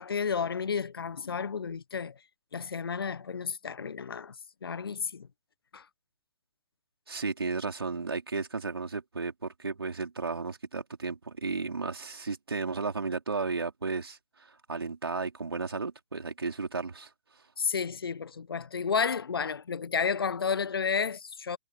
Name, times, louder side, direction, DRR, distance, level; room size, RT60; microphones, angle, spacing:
voice 1, 0.0-2.2 2.5-4.3 4.6-5.3 5.7-5.9 17.6-21.6, left 6 dB, 65° left, 1.2 m, -31 dB
voice 2, 7.1-17.1, right 4 dB, 70° right, 4.8 m, -34 dB
figure-of-eight pair, 120°, 13 cm